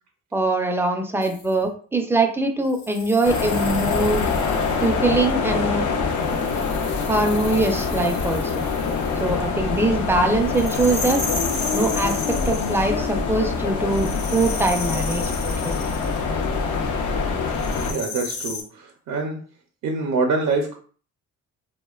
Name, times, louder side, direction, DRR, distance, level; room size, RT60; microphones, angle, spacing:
voice 1, 0.3-4.2 4.8-5.8 7.1-8.6 9.2-11.2 11.7-15.3 15.6-15.7, right 2 dB, 10° right, 4 dB, 0.4 m, -22 dB
sound 1, 1.2-1.5 2.7-5.0 6.1-9.3 10.5-12.9 13.9-16.2 17.5-18.6, left 3 dB, 65° left, 1.0 m, -34 dB
sound 2, 3.2-17.9, left 4 dB, 85° left, 0.6 m, -25 dB
voice 2, 17.8-19.4 19.8-20.7, right 3 dB, 65° right, 2 dB, 0.5 m, -25 dB
2.7 x 2.1 x 2.3 m, 0.43 s
cardioid pair, 90°, 30 cm